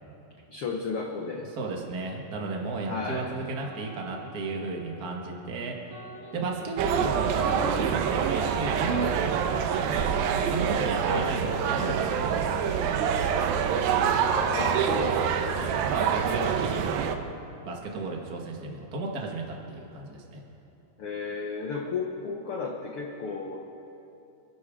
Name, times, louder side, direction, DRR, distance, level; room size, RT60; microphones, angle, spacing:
voice 1, 0.5-1.5 2.9-3.3 11.1-11.3 14.5-15.7 21.0-23.6, left 4 dB, 85° left, 0 dB, 1.2 m, -33 dB
voice 2, 1.6-5.8 6.3-10.0 10.5-13.0 15.7-16.8 17.6-20.4, right 3 dB, 35° right, 0 dB, 1.6 m, -34 dB
sound 1, 3.6-5.2 5.9-8.4 8.9-9.1, right 4 dB, 60° right, 4.4 m, -38 dB
sound 2, 6.8-17.2, right 7 dB, 85° right, 2.6 m, -26 dB
28.0 x 11.5 x 3.8 m, 2.8 s
omnidirectional pair, 4.1 m